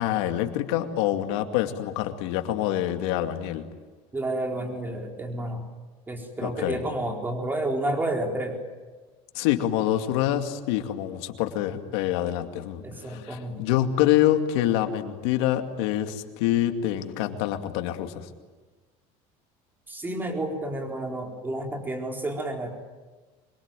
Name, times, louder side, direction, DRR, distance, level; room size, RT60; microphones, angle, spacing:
voice 1, 0.0-3.6 6.4-6.8 9.3-18.3, left 12 dB, 85° left, 6 dB, 2.5 m, -26 dB
voice 2, 4.1-5.7 6.1-8.6 12.8-13.7 19.9-22.7, right 1 dB, 15° right, 2 dB, 4.4 m, -30 dB
25.5 x 22.0 x 9.2 m, 1.3 s
cardioid pair, 135°, 14 cm